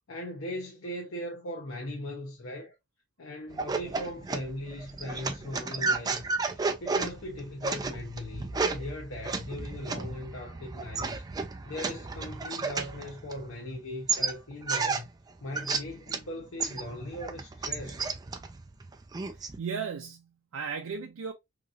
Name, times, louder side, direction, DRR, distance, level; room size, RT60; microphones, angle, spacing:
voice 1, 0.1-2.7 3.2-6.2 6.5-11.2 11.6-15.1 15.4-18.1, left 1 dB, 80° left, 0.8 m, -39 dB
sound 1, 3.5-13.7 14.1-16.3 16.6-19.6, right 4 dB, 20° right, 0.3 m, -33 dB
voice 2, 19.6-21.3, right 6 dB, 85° right, 0.4 m, -35 dB
2.9 x 2.6 x 2.4 m
head